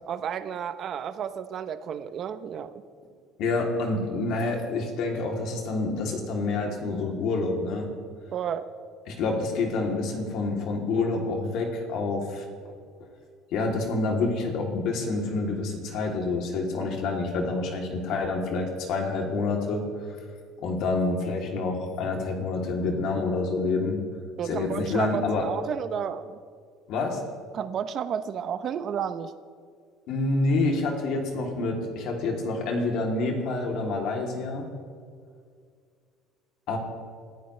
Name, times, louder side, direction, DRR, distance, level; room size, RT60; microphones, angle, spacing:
voice 1, 0.1-2.8 8.3-8.7 24.4-26.4 27.5-29.3, right 8 dB, 40° right, 11 dB, 0.8 m, -32 dB
voice 2, 3.4-7.9 9.1-12.4 13.5-19.8 20.6-24.0 24.5-25.5 26.9-27.2 30.1-34.7 36.7-36.8, left 3 dB, 55° left, 1 dB, 3.1 m, -27 dB
27.5 x 15.0 x 3.3 m, 2.1 s
cardioid pair, 155°, 0 cm